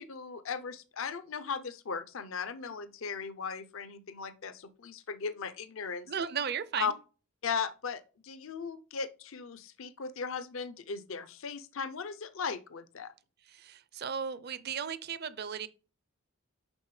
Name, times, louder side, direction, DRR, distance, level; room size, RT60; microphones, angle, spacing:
voice 1, 0.0-6.1 6.8-6.9 7.4-13.1, left 5 dB, 65° left, 0.6 m, -37 dB
voice 2, 6.1-6.9 13.5-15.7, right 7 dB, 45° right, 0.5 m, -35 dB
10.5 x 4.0 x 3.2 m
head